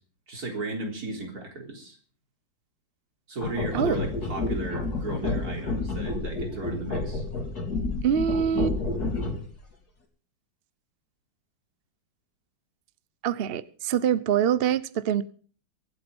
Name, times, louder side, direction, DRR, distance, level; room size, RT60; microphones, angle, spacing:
voice 1, 0.3-2.0 3.3-7.2, right 2 dB, 50° right, 1 dB, 4.2 m, -35 dB
sound 1, 3.4-9.6, left 3 dB, 50° left, 3.7 m, -30 dB
voice 2, 8.0-8.8 13.2-15.2, right 9 dB, 75° right, 16 dB, 0.5 m, -24 dB
23.5 x 8.3 x 5.3 m, 0.42 s
omnidirectional pair, 2.1 m